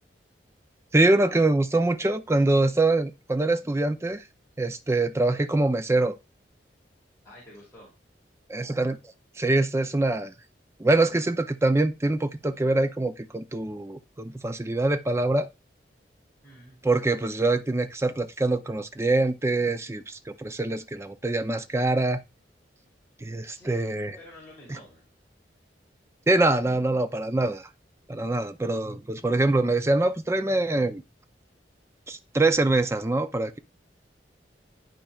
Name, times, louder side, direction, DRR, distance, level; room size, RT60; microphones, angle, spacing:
voice 1, 0.9-4.2 4.6-6.1 8.5-9.0 9.4-10.3 10.8-15.5 16.8-22.2 23.2-24.2 26.3-27.7 28.1-31.0 32.1-33.6, right 2 dB, 15° right, 0.5 m, -24 dB
voice 2, 7.2-7.9 16.4-16.8 23.4-23.9 24.2-25.0, left 1 dB, 15° left, 2.9 m, -49 dB
11.5 x 4.5 x 2.4 m
head